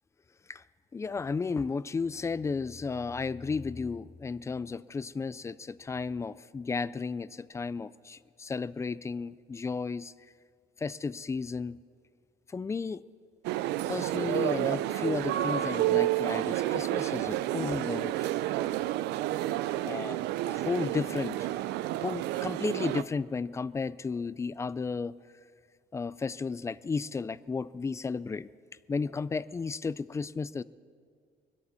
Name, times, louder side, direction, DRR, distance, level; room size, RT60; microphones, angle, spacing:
voice 1, 0.9-10.1 10.8-11.8 12.5-13.0 13.8-18.3 19.8-20.2 20.5-21.5 22.0-25.2 25.9-28.5 28.9-30.6, left 4 dB, 15° left, 19 dB, 0.3 m, -33 dB
sound 1, 13.4-23.0, right 14 dB, 85° right, 0.5 m, -30 dB
22.5 x 8.4 x 6.8 m, 2.1 s
cardioid pair, 110°, 17 cm